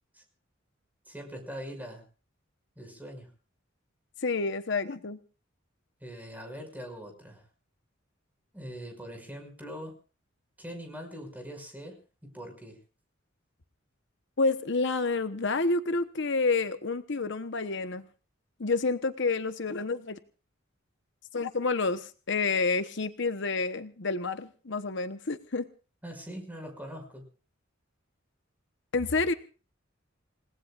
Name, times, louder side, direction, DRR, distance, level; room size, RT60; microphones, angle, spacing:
voice 1, 1.1-2.0 2.8-3.3 6.0-7.5 8.5-10.0 10.6-12.8 26.0-27.3, equal, 10° right, 4 dB, 6.0 m, -42 dB
voice 2, 4.2-5.2 14.4-18.1 18.6-20.2 21.3-25.7 28.9-29.3, left 3 dB, 65° left, 9 dB, 1.1 m, -29 dB
29.0 x 18.5 x 2.5 m, 0.37 s
head